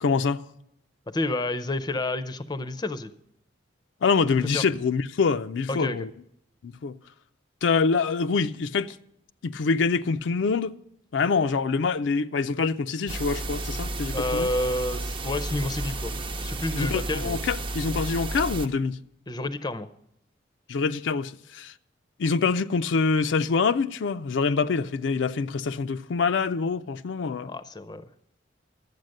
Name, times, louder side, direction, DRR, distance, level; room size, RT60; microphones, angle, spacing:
voice 1, 0.0-0.4 4.0-6.1 6.6-7.0 7.6-9.0 9.4-10.7 11.1-14.5 16.7-19.0 20.7-21.7 22.2-27.5, left 4 dB, 80° left, 0.4 m, -25 dB
voice 2, 1.1-3.1 4.5-4.6 5.7-6.0 14.1-16.1 16.4-17.4 19.3-19.9 27.4-28.0, left 2 dB, 20° left, 0.5 m, -29 dB
sound 1, 13.1-18.7, right 2 dB, 30° right, 0.6 m, -32 dB
12.0 x 8.1 x 6.4 m
head